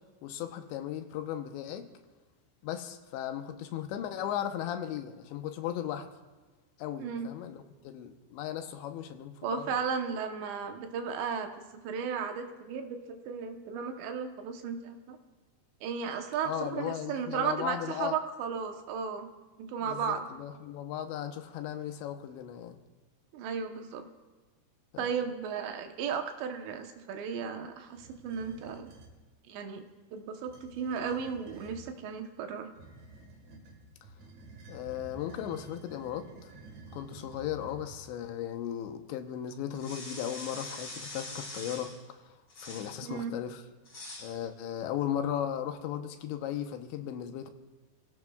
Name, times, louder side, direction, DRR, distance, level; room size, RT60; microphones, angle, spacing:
voice 1, 0.2-1.9 2.6-6.1 6.8-9.7 16.4-18.2 19.8-22.8 24.9-25.1 34.7-36.5 36.9-42.3 42.6-43.6 44.2-47.5, left 10 dB, 85° left, 3.2 m, -36 dB
voice 2, 9.4-11.5 11.8-15.2 15.8-19.3 19.6-20.3 23.3-24.1 25.0-28.9 29.5-29.8 30.1-32.7 43.0-43.3, right 6 dB, 80° right, 3.2 m, -35 dB
sound 1, 27.9-29.2 30.3-32.0 32.7-38.2, right 3 dB, 55° right, 2.3 m, -51 dB
sound 2, 39.7-42.0 42.5-43.0 43.9-44.4, left 2 dB, 30° left, 4.2 m, -43 dB
29.0 x 17.0 x 2.3 m
omnidirectional pair, 5.0 m